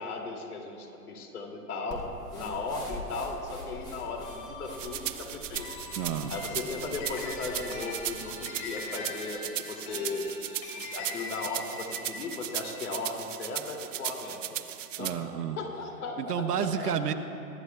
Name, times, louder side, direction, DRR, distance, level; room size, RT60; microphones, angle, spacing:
voice 1, 0.0-2.1 2.3-5.7 6.3-10.2 10.7-14.4 15.0-15.2 15.6-16.9, left 3 dB, 75° left, 1 dB, 2.5 m, -36 dB
sound 1, 1.9-8.4, equal, 10° left, 0.9 m, -45 dB
sound 2, 4.2-14.8, left 4 dB, 40° left, 2.9 m, -43 dB
sound 3, 4.8-15.1, right 12 dB, 55° right, 0.6 m, -37 dB
voice 2, 6.0-6.3 15.0-15.6 16.2-17.1, right 8 dB, 85° right, 6 dB, 1.0 m, -30 dB
23.0 x 12.0 x 2.3 m, 2.9 s
hypercardioid pair, 155°, 45 cm